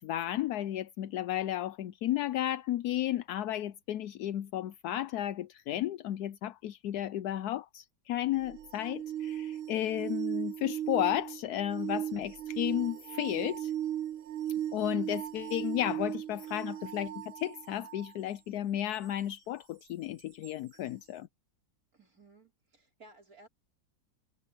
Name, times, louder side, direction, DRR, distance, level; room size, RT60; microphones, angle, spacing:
voice 1, 0.0-13.7 14.7-21.3, left 12 dB, 70° left, 0.9 m, -33 dB
sound 1, 8.4-18.1 20.4-20.5, right 11 dB, 85° right, 1.8 m, -37 dB
voice 2, 21.9-23.5, right 2 dB, 45° right, 4.8 m, -57 dB
omnidirectional pair, 2.2 m